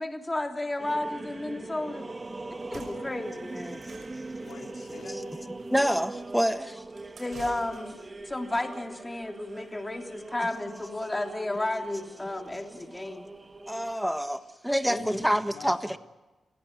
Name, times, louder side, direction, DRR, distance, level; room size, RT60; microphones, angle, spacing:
voice 1, 0.0-2.1 2.7-3.8 7.2-8.0 8.2-13.3 14.9-15.1, left 1 dB, 20° left, 3.2 m, -33 dB
sound 1, 0.8-13.9, right 2 dB, 25° right, 1.9 m, -42 dB
sound 2, 2.6-8.2, right 4 dB, 60° right, 5.8 m, -51 dB
voice 2, 3.8-5.5 15.0-16.0, left 5 dB, 90° left, 3.9 m, -49 dB
voice 3, 5.7-6.8 13.7-16.0, equal, ahead, 1.4 m, -27 dB
28.0 x 17.0 x 9.5 m
cardioid pair, 85°, 0 cm